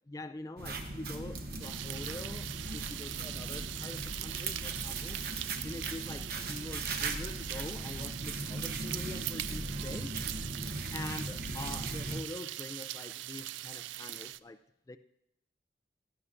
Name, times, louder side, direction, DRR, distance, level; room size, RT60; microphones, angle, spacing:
voice 1, 0.1-5.2 5.6-10.2 10.4-10.5 10.9-15.0, left 2 dB, 20° left, 0.3 m, -45 dB
sound 1, 0.6-12.2, right 2 dB, 55° right, 1.0 m, -38 dB
sound 2, 1.6-14.4, right 14 dB, 85° right, 0.3 m, -41 dB
16.5 x 11.0 x 2.5 m
head